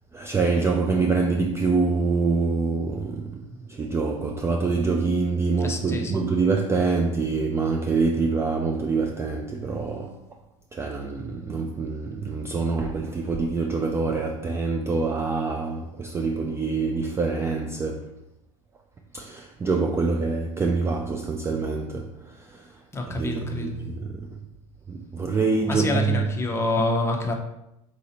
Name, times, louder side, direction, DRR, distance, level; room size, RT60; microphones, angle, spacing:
voice 1, 0.1-10.2 10.7-18.2 19.1-24.4 24.9-26.3, right 4 dB, 15° right, 0.3 m, -25 dB
voice 2, 5.6-6.2 22.9-23.8 25.7-27.3, left 2 dB, 15° left, 0.8 m, -27 dB
4.1 x 2.7 x 4.1 m
hypercardioid pair, 100°, 18 cm